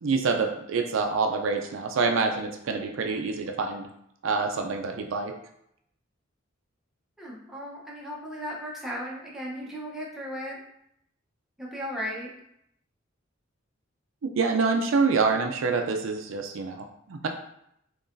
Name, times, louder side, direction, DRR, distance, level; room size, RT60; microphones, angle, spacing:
voice 1, 0.0-3.9 4.2-5.3 14.2-17.3, right 4 dB, 75° right, 4 dB, 0.4 m, -26 dB
voice 2, 7.2-10.6 11.6-12.3, equal, ahead, -4 dB, 0.8 m, -36 dB
3.8 x 2.9 x 2.6 m, 0.75 s
head